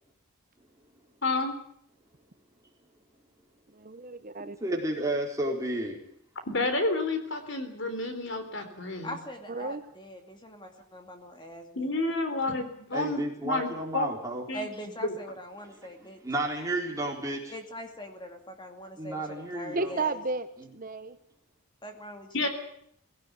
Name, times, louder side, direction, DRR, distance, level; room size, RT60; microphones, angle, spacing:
voice 1, 1.2-1.5 6.5-9.2 11.8-13.7 13.9-14.1 14.5-14.7 15.0-15.1 22.3-22.5, left 2 dB, 55° left, 8 dB, 3.6 m, -30 dB
voice 2, 3.7-4.6 9.5-9.8 19.7-20.5 20.7-21.2, right 3 dB, 40° right, 10 dB, 0.9 m, -32 dB
voice 3, 4.4-6.0 12.9-14.4 16.0-17.5 19.0-19.9 20.6-20.7, right 1 dB, 15° right, -1 dB, 4.2 m, -32 dB
voice 4, 9.0-11.9 14.5-16.2 17.5-19.2 19.5-20.2 21.8-22.5, equal, 20° left, 5 dB, 2.5 m, -42 dB
18.5 x 17.0 x 9.4 m, 0.70 s
head